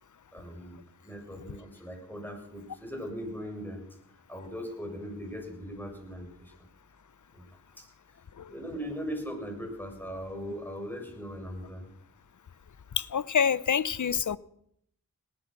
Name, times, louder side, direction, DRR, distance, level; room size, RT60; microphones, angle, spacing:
voice 1, 0.3-3.8 4.3-6.7 7.3-7.5 7.8-7.9 8.5-11.9, equal, 5° left, 6.7 m, -39 dB
voice 2, 13.0-14.4, left 7 dB, 60° left, 0.8 m, -27 dB
18.5 x 12.5 x 6.1 m
cardioid pair, 45°, 34 cm